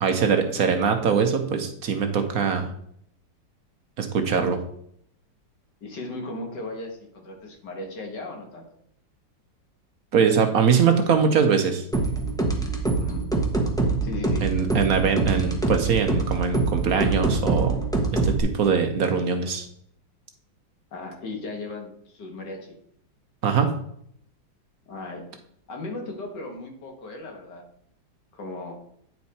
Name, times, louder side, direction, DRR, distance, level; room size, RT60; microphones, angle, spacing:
voice 1, 0.0-2.7 4.0-4.6 10.1-11.8 14.4-17.8 18.2-19.7 23.4-23.7, right 6 dB, 60° right, 6 dB, 1.1 m, -22 dB
voice 2, 5.8-8.7 12.9-13.2 14.0-14.4 20.9-22.8 24.9-25.2 25.7-27.6 28.3-28.7, left 2 dB, 65° left, 2 dB, 2.1 m, -36 dB
sound 1, 11.9-18.4, right 3 dB, 5° left, 0.7 m, -25 dB
9.5 x 4.6 x 4.2 m, 0.67 s
omnidirectional pair, 2.0 m